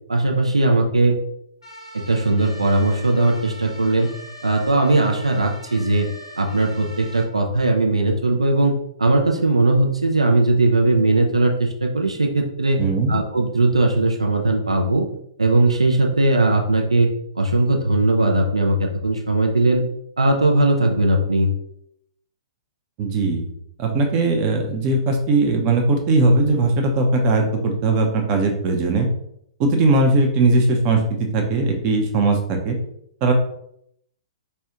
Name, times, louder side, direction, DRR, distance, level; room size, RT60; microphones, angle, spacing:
voice 1, 0.1-1.2 1.9-4.1 4.4-6.1 6.4-12.8 13.1-15.1 15.4-17.1 17.4-19.8 20.2-21.5, right 2 dB, 80° right, 3 dB, 0.5 m, -19 dB
sound 1, 1.6-7.2, equal, 90° left, 1.0 m, -41 dB
voice 2, 12.8-13.2 23.0-23.5 23.8-29.1 29.6-32.8 33.2-33.3, right 2 dB, 35° right, 3 dB, 0.6 m, -19 dB
4.2 x 2.3 x 2.9 m, 0.73 s
figure-of-eight pair, 110°, 3 cm